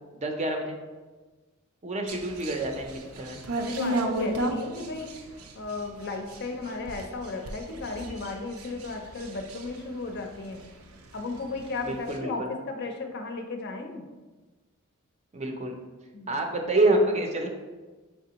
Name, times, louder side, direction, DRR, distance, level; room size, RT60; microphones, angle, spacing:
voice 1, 0.1-0.8 1.8-3.4 11.8-12.5 15.3-15.7 16.3-17.5, right 2 dB, 35° right, 3 dB, 0.5 m, -27 dB
sound 1, 2.1-10.9 11.2-12.2, right 1 dB, 85° right, 0.5 m, -34 dB
voice 2, 3.6-5.1 5.6-10.6 11.1-14.0 16.1-16.4, left 3 dB, 55° left, 4 dB, 0.5 m, -35 dB
5.4 x 3.4 x 2.9 m, 1.3 s
head